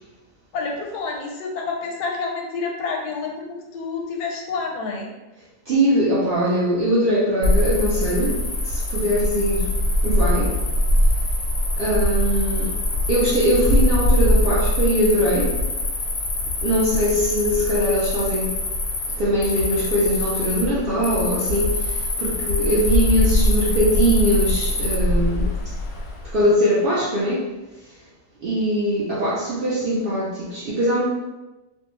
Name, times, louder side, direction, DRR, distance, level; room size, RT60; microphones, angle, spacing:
voice 1, 0.5-5.1, left 4 dB, 90° left, 0 dB, 1.1 m, -28 dB
voice 2, 5.7-9.7 10.0-10.6 11.8-12.7 13.1-15.5 16.6-18.6 19.2-25.6 26.3-27.4 28.4-31.0, equal, 75° right, -8 dB, 0.5 m, -21 dB
Cricket, 7.4-26.3, left 1 dB, 70° left, 0.7 m, -22 dB
2.5 x 2.2 x 2.9 m, 1.1 s
omnidirectional pair, 1.6 m